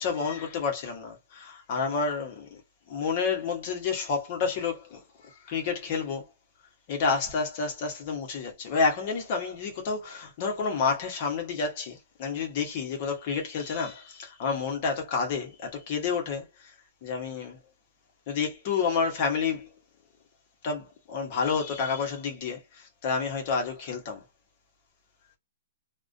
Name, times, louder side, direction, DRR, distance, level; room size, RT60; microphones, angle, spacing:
voice 1, 0.0-2.5 2.9-5.0 5.5-6.2 6.9-16.5 17.0-17.6 18.3-19.7 20.6-24.2, left 5 dB, 35° left, 0.8 m, -29 dB
2.4 x 2.1 x 2.5 m
hypercardioid pair, 165°, 0 cm